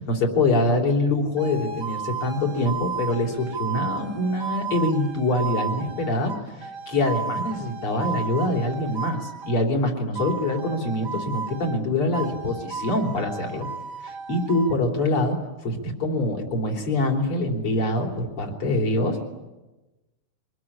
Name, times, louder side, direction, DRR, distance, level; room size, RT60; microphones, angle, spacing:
voice 1, 0.0-6.3 6.6-13.7 14.0-15.4 15.6-19.2, left 2 dB, 45° left, 2 dB, 4.2 m, -24 dB
sound 1, 1.4-9.7 10.1-11.8 12.1-14.8, right 5 dB, 50° right, 1.4 m, -33 dB
24.5 x 21.0 x 9.9 m, 1.1 s
omnidirectional pair, 3.5 m